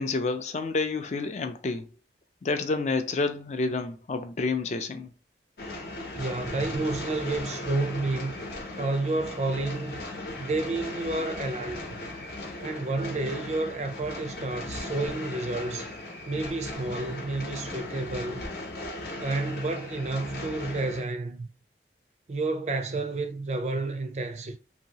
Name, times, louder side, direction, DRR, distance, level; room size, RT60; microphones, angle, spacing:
voice 1, 0.0-1.8 2.4-5.1, left 3 dB, 40° left, 0.4 m, -29 dB
sound 1, 5.6-21.0, left 2 dB, 60° left, 0.8 m, -37 dB
voice 2, 6.2-8.4 8.8-10.0 10.4-11.8 12.6-15.9 16.3-18.4 19.2-21.5 22.3-24.6, right 2 dB, 40° right, 0.4 m, -30 dB
2.8 x 2.7 x 2.8 m
head